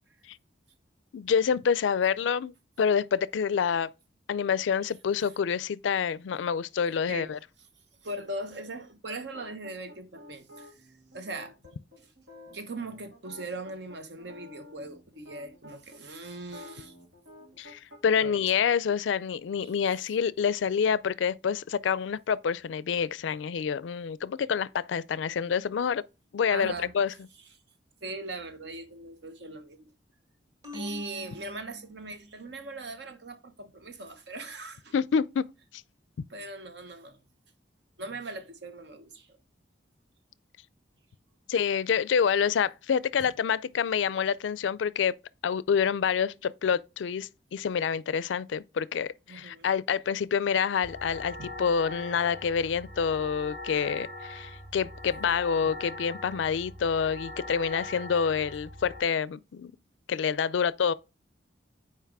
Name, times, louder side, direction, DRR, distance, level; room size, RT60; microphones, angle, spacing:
voice 1, 1.1-3.9 4.3-7.4 17.6-26.0 26.3-27.1 34.9-35.4 41.5-45.1 45.4-59.7 60.1-60.9, left 7 dB, 75° left, 0.4 m, -27 dB
voice 2, 8.0-10.7 11.1-11.5 12.0-12.1 12.5-16.9 18.2-18.5 19.6-19.7 26.5-26.9 28.0-29.9 30.7-34.9 36.3-37.2 38.0-39.3 49.3-49.6 51.4-51.5 55.3-55.7, right 2 dB, 65° right, 1.0 m, -40 dB
sound 1, 9.3-16.0 16.4-18.3, left 1 dB, 85° right, 2.9 m, -50 dB
sound 2, 30.6-32.3, equal, 20° right, 1.7 m, -41 dB
sound 3, 50.8-59.0, left 1 dB, 40° right, 2.1 m, -42 dB
5.7 x 4.6 x 4.6 m
head